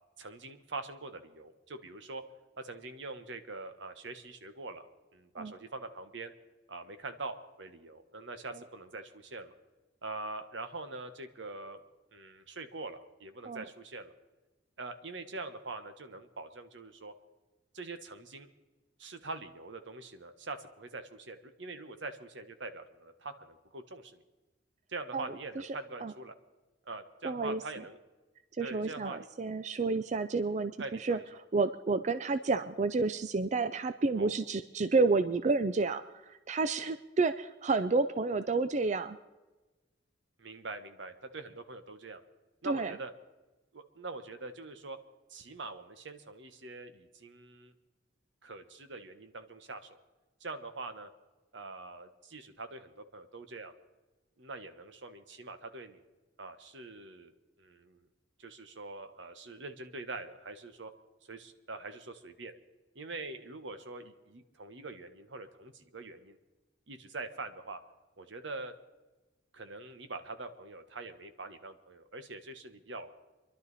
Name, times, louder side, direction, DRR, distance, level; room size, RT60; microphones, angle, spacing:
voice 1, 0.2-2.2 2.6-4.9 5.1-6.3 6.7-9.5 10.0-11.8 12.1-14.1 14.8-17.1 17.7-18.5 19.0-24.2 24.9-26.3 26.8-28.0 28.6-29.3 30.8-31.2 34.1-34.3 40.4-42.2 42.6-43.1 43.7-45.0 45.3-47.7 48.4-50.0 50.4-51.1 51.5-53.7 54.4-56.0 56.4-58.1 58.4-60.9 61.3-62.5 62.9-66.4 66.9-67.8 68.2-68.8 69.5-73.1, right 3 dB, 75° right, 9 dB, 1.2 m, -44 dB
voice 2, 25.1-25.7 26.0-26.1 27.2-27.6 28.6-31.2 31.5-39.2 42.6-42.9, right 3 dB, 40° right, 11 dB, 0.4 m, -30 dB
27.0 x 11.5 x 4.1 m, 1.2 s
head